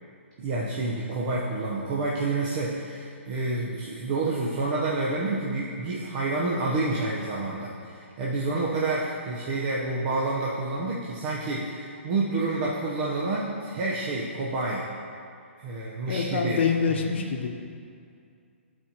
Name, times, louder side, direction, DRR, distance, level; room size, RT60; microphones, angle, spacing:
voice 1, 0.4-14.9 15.6-16.6, right 2 dB, 40° right, -5 dB, 0.9 m, -28 dB
voice 2, 16.1-17.5, left 6 dB, 60° left, 3 dB, 0.9 m, -25 dB
13.0 x 4.4 x 2.9 m, 2.4 s
hypercardioid pair, 140°, 7 cm